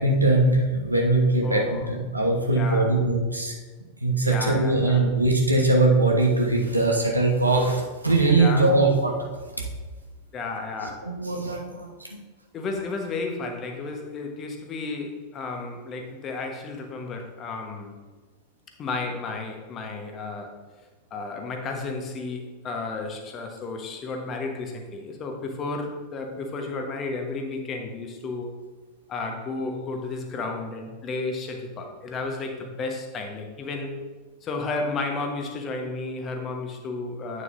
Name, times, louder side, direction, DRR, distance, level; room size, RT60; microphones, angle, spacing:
voice 1, 0.0-3.6 4.0-9.1 11.0-11.9, right 2 dB, 85° right, 0 dB, 1.0 m, -21 dB
voice 2, 1.4-1.9 2.5-2.9 4.2-5.1 8.3-8.7 10.3-11.1 12.5-18.0 18.8-20.6 21.1-28.5 29.1-34.0 34.4-37.4, left 3 dB, 30° left, 3 dB, 1.1 m, -32 dB
9.0 x 6.4 x 2.6 m, 1.3 s
figure-of-eight pair, 90°, 0 cm